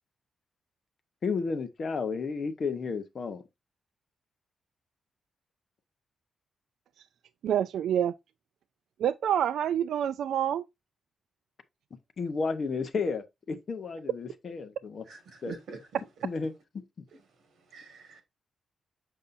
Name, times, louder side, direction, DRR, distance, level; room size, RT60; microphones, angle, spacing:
voice 1, 1.2-3.4 12.2-15.0 15.4-15.6 16.2-16.5, left 4 dB, 40° left, 0.8 m, -32 dB
voice 2, 7.4-8.1 9.0-10.6, right 10 dB, 85° right, 0.3 m, -27 dB
voice 3, 15.1-16.0 17.7-18.2, right 4 dB, 65° right, 1.8 m, -44 dB
6.8 x 5.4 x 2.6 m
wide cardioid pair, 175°, 0 cm